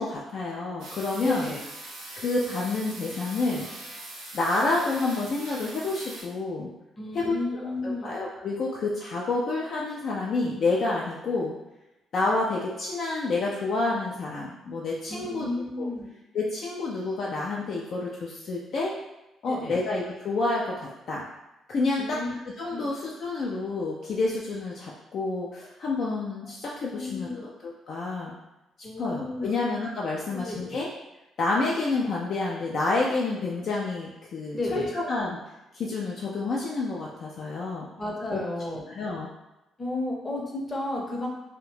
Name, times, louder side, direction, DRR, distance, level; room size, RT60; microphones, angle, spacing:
voice 1, 0.0-1.5 2.2-3.7 4.3-6.7 7.1-11.5 12.1-15.5 15.8-15.9 16.3-18.9 19.4-21.2 21.7-22.2 22.6-28.4 29.0-30.9 31.4-35.4 35.7-37.9 38.3-38.4 38.9-39.3, left 3 dB, 50° left, -4 dB, 0.3 m, -29 dB
sound 1, 0.8-6.2, right 2 dB, 65° right, 0.7 m, -42 dB
voice 2, 1.2-1.6 7.0-8.1 15.1-16.1 19.5-19.8 22.0-22.3 22.7-22.9 26.8-27.3 28.8-29.6 30.1-30.8 34.5-34.9 38.0-38.8 39.8-41.3, left 2 dB, 25° left, -1 dB, 0.7 m, -33 dB
2.6 x 2.1 x 3.1 m, 0.97 s
figure-of-eight pair, 45°, 0 cm